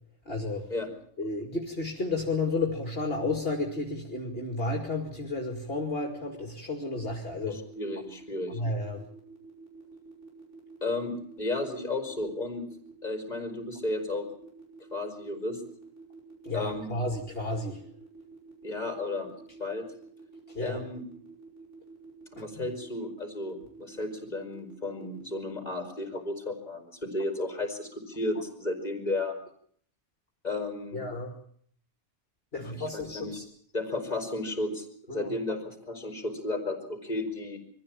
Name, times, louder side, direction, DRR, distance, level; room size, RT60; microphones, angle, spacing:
voice 1, 0.3-0.7 1.2-7.6 8.5-9.0 16.4-17.8 20.5-20.8 22.4-22.5 30.9-31.3 32.5-33.4 35.1-35.3, left 2 dB, 55° left, 2 dB, 2.8 m, -32 dB
sound 1, 7.0-25.4, right 3 dB, 85° right, 5.6 m, -49 dB
voice 2, 7.4-8.6 10.8-12.7 13.0-14.3 14.9-15.6 16.5-16.9 18.6-19.3 19.6-19.9 20.6-21.0 22.3-29.4 30.4-31.0 32.5-33.4 33.7-37.6, left 2 dB, 35° left, 4 dB, 4.6 m, -33 dB
24.0 x 15.0 x 8.8 m, 0.62 s
omnidirectional pair, 1.2 m